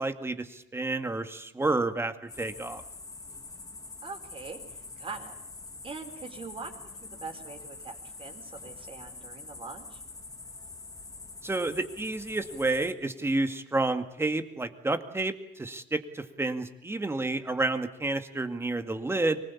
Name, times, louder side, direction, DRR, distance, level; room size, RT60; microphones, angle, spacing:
voice 1, 0.0-2.8 11.4-19.4, right 2 dB, 15° right, 8 dB, 2.1 m, -30 dB
sound 1, 2.3-12.9, left 3 dB, 20° left, 2.3 m, -45 dB
voice 2, 4.0-5.4 5.8-6.7 7.0-10.0, right 4 dB, 35° right, 4 dB, 4.8 m, -43 dB
24.5 x 20.5 x 8.6 m, 0.83 s
cardioid pair, 110°, 17 cm